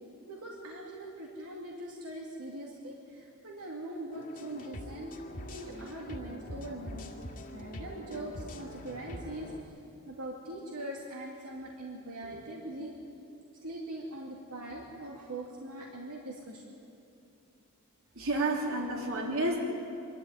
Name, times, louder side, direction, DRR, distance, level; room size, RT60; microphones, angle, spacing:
voice 1, 0.3-5.2 5.5-7.1 7.5-9.5 10.0-13.0 13.6-16.6, right 1 dB, 85° right, -2 dB, 2.4 m, -42 dB
sound 1, 4.1-9.6, equal, 40° left, 2.0 m, -44 dB
voice 2, 18.1-19.6, right 2 dB, 65° right, 0 dB, 3.4 m, -30 dB
24.5 x 13.0 x 9.4 m, 2.6 s
head